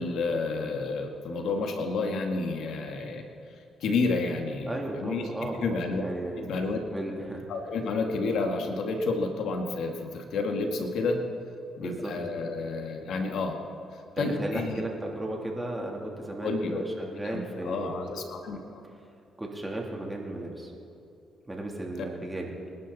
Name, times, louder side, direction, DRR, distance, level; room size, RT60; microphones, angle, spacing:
voice 1, 0.0-3.2 3.8-5.3 5.6-6.0 6.4-6.8 7.5-11.2 11.8-13.6 14.2-14.8 16.4-16.8 17.2-18.8, left 3 dB, 75° left, 3 dB, 1.8 m, -30 dB
voice 2, 4.7-5.7 5.9-6.5 6.9-7.4 11.8-12.1 14.1-18.1 18.5-18.6 19.4-20.7 21.5-22.5, right 1 dB, 15° right, -1 dB, 3.1 m, -35 dB
27.5 x 11.5 x 4.2 m, 2.7 s
cardioid pair, 90°, 0 cm